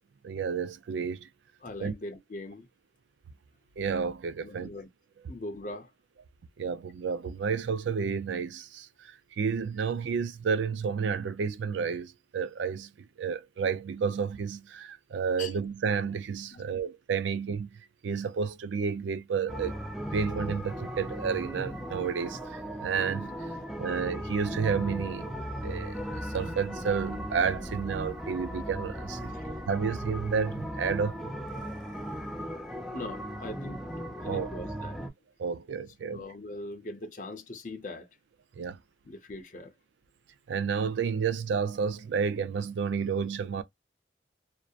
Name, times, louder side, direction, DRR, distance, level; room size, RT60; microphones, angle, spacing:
voice 1, 0.2-1.3 1.8-1.9 3.8-4.7 6.6-19.8 20.1-23.5 23.8-25.3 25.6-31.2 34.3-34.5 35.4-36.2 38.6-38.8 40.5-43.6, right 6 dB, 80° right, 0.4 m, -31 dB
voice 2, 1.6-2.7 4.4-4.9 5.3-5.9 15.4-15.6 16.5-16.6 29.3-29.5 31.6-35.0 36.0-38.1 39.0-39.7, left 2 dB, 45° left, 0.6 m, -42 dB
sound 1, 19.5-35.1, equal, ahead, 0.4 m, -37 dB
2.7 x 2.0 x 2.3 m
head